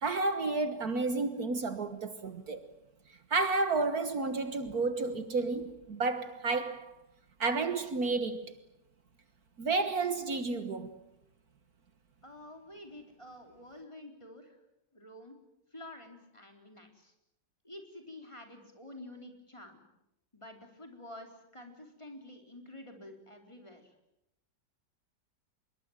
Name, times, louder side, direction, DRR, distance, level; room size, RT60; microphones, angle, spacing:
voice 1, 0.0-2.6 3.3-6.9 7.4-8.5 9.6-10.9, right 3 dB, 60° right, 1.9 m, -31 dB
voice 2, 12.2-14.6 14.9-15.4 15.7-17.1 17.6-19.8 20.3-23.9, left 1 dB, 15° left, 4.1 m, -49 dB
25.5 x 22.0 x 9.0 m
omnidirectional pair, 1.9 m